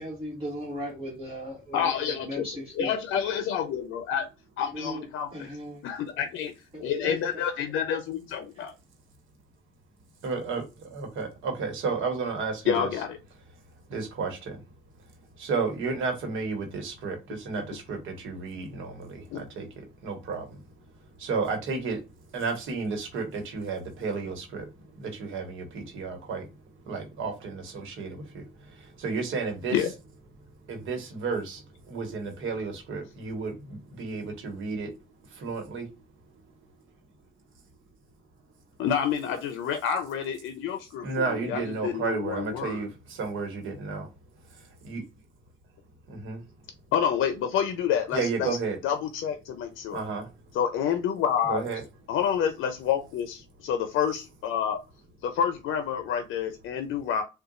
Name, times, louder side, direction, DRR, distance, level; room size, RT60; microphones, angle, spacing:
voice 1, 0.0-2.9 4.7-5.0 5.3-5.8 6.7-7.4 8.5-8.6, equal, 25° right, 1.4 m, -37 dB
voice 2, 1.7-2.5 2.8-4.3 4.6-5.3 5.8-6.5 6.8-8.7 12.6-13.2 19.3-19.4 29.7-29.9 38.8-42.8 46.9-48.6 48.8-50.0 50.5-51.7 52.1-54.8 55.2-57.2, left 8 dB, 85° left, 0.5 m, -28 dB
voice 3, 10.2-10.6 10.9-12.9 13.9-14.6 15.4-19.7 20.0-20.4 21.2-22.0 22.3-24.6 25.0-26.4 26.9-28.4 29.0-29.8 30.7-31.6 31.9-34.9 35.4-35.8 41.0-42.9 43.2-44.1 44.8-45.0 46.1-46.4 48.1-48.8 49.9-50.3 51.5-51.8, right 4 dB, 85° right, 1.2 m, -32 dB
3.8 x 2.3 x 2.4 m
cardioid pair, 90°, 20 cm